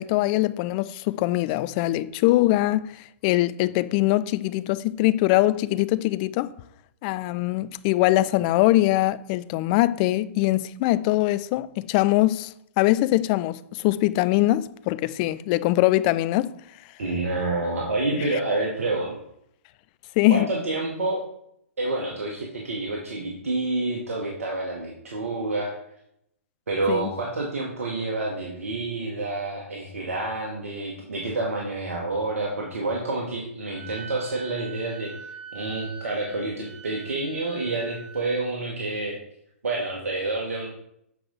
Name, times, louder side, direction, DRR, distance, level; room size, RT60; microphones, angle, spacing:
voice 1, 0.0-6.5 7.0-16.5 20.2-20.5 26.9-27.1, left 17 dB, 35° left, 0.3 m, -22 dB
voice 2, 17.0-19.1 20.3-21.2 21.8-25.7 26.7-35.1 35.5-39.1 39.6-40.7, right 2 dB, 75° right, 1.4 m, -28 dB
Wind instrument woodwind instrument, 33.7-38.4, right 6 dB, 35° right, 2.1 m, -43 dB
7.6 x 4.8 x 3.9 m
figure-of-eight pair, 115°, 8 cm